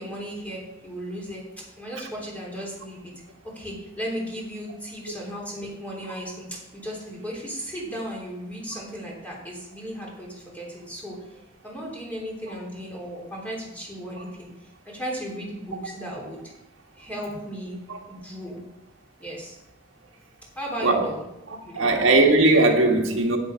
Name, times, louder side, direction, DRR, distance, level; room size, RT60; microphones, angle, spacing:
voice 1, 0.0-3.1 3.5-11.2 11.6-16.5 17.0-17.8 18.1-18.6 19.2-19.6 20.5-21.9, equal, 10° left, -3 dB, 3.4 m, -36 dB
voice 2, 21.7-23.4, right 2 dB, 85° right, 2 dB, 1.6 m, -19 dB
10.5 x 9.4 x 4.5 m, 0.90 s
head